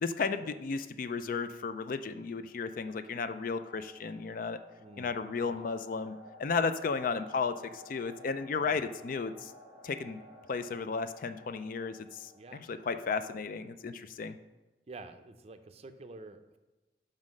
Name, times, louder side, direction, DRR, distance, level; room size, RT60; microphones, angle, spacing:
voice 1, 0.0-4.6 5.0-9.5 9.8-10.2 10.5-14.3, left 5 dB, 50° left, 11 dB, 0.4 m, -34 dB
sound 1, 2.2-13.0, left 1 dB, 80° left, 2.4 m, -55 dB
voice 2, 4.8-5.6 8.6-8.9 12.3-12.7 14.9-16.6, right 3 dB, 35° right, 9 dB, 0.5 m, -49 dB
5.6 x 5.2 x 6.2 m, 1.2 s
head